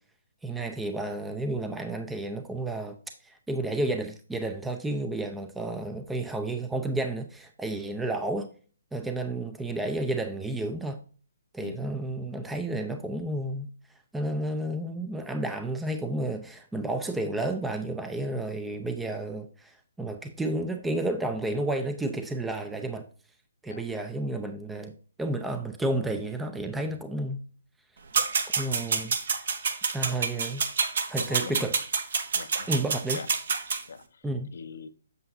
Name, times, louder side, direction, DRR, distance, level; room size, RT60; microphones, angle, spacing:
voice 1, 0.4-3.0 3.2-8.5 8.9-11.0 11.5-13.7 14.1-23.0 23.6-24.9 25.2-27.4 28.6-29.5 29.9-30.6 31.1-31.8 32.7-33.2 34.2-34.5, right 2 dB, 5° right, 0.5 m, -31 dB
sound 1, 28.1-33.8, right 5 dB, 60° right, 1.2 m, -28 dB
voice 2, 31.2-31.6 32.3-33.3 33.9-34.2 34.5-34.9, left 5 dB, 65° left, 0.7 m, -42 dB
8.0 x 6.7 x 2.6 m
hypercardioid pair, 150°, 0 cm